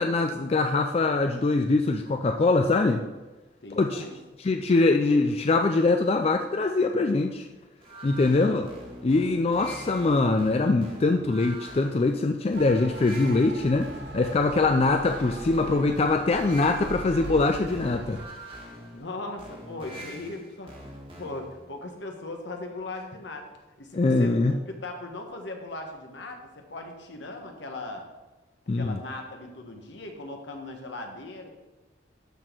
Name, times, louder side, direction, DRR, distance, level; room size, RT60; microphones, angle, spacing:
voice 1, 0.0-3.0 3.7-4.0 4.4-7.5 8.0-8.7 9.0-18.2 23.9-24.5 28.7-29.0, left 3 dB, 30° left, 5 dB, 0.3 m, -23 dB
voice 2, 3.6-4.2 8.3-8.6 14.8-15.0 18.9-23.5 23.8-28.1 28.7-31.5, left 2 dB, 70° left, 3 dB, 1.2 m, -39 dB
sound 1, 7.8-21.6, right 1 dB, 30° right, 1.5 m, -44 dB
Motor vehicle (road) / Siren, 12.6-18.3, right 3 dB, 60° right, 0.6 m, -40 dB
12.0 x 4.2 x 4.5 m, 1.1 s
head